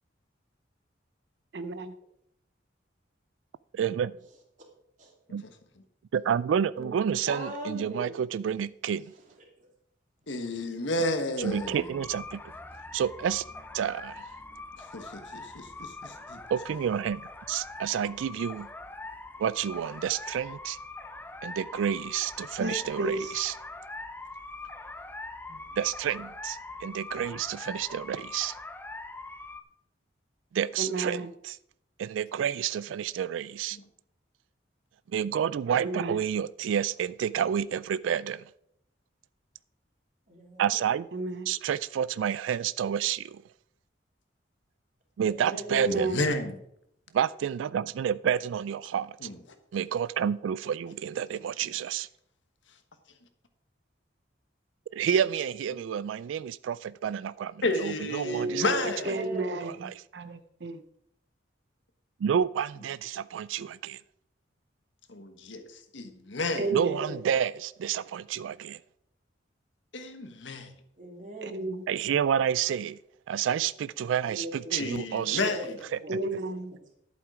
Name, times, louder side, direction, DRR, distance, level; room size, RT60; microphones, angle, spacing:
voice 1, 1.5-1.9 22.6-23.3 30.8-31.3 35.8-36.2 41.1-41.5 45.7-46.2 59.1-59.7 60.1-60.8 66.6-67.0 71.4-71.8 76.1-76.8, right 2 dB, 65° right, 0.7 m, -32 dB
voice 2, 3.7-4.1 5.3-5.4 6.1-9.1 11.4-12.4 12.9-13.4 13.7-14.2 16.5-17.2 17.5-18.7 19.4-20.8 21.4-23.5 25.8-28.6 30.5-31.6 32.0-33.8 35.1-38.4 40.6-41.1 41.5-43.4 45.2-46.1 47.1-49.3 49.7-52.1 54.9-58.7 59.6-59.9 62.2-64.0 66.7-68.8 71.9-73.0 73.3-75.5 75.9-76.2, right 8 dB, 90° right, 0.3 m, -29 dB
voice 3, 7.3-8.3 40.3-40.8 45.3-45.8 58.2-59.7 66.5-67.3 71.0-71.7 74.2-74.8 75.2-76.3 76.7-77.0, right 1 dB, 40° right, 2.7 m, -38 dB
voice 4, 10.3-11.9 14.9-16.4 25.5-25.6 33.7-33.8 45.9-46.5 49.2-49.4 55.1-55.2 57.6-59.2 65.1-66.7 69.9-70.7 74.7-75.8, left 2 dB, 80° left, 1.4 m, -32 dB
sound 1, 11.4-29.6, left 2 dB, 10° left, 0.5 m, -42 dB
11.0 x 8.3 x 5.0 m
head